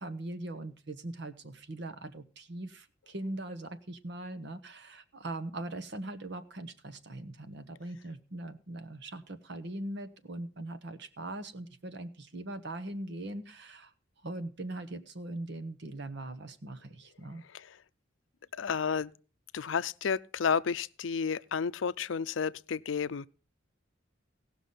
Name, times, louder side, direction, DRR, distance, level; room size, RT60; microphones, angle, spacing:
voice 1, 0.0-13.9 14.2-17.4, right 1 dB, 65° right, 1.2 m, -41 dB
voice 2, 18.6-19.1 19.5-23.3, left 6 dB, 80° left, 0.5 m, -31 dB
17.5 x 6.0 x 5.5 m
head